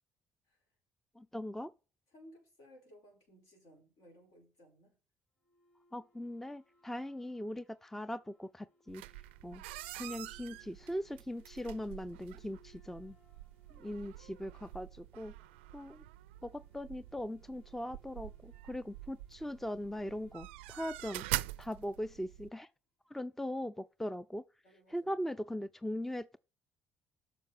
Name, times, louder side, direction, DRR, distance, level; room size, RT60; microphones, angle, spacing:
voice 1, 1.2-1.7 5.9-9.0 9.4-9.6 10.0-13.2 13.7-15.3 15.7-16.0 16.4-21.3 21.6-22.7 23.1-24.4 24.9-26.4, equal, 5° left, 0.4 m, -40 dB
voice 2, 2.1-5.0 13.8-14.1 20.7-21.0 24.6-25.2, equal, 65° left, 5.2 m, -60 dB
sound 1, 5.4-22.0, right 1 dB, 25° left, 3.8 m, -70 dB
sound 2, 8.9-22.5, right 17 dB, 70° right, 0.4 m, -45 dB
7.7 x 6.1 x 6.0 m
figure-of-eight pair, 50°, 6 cm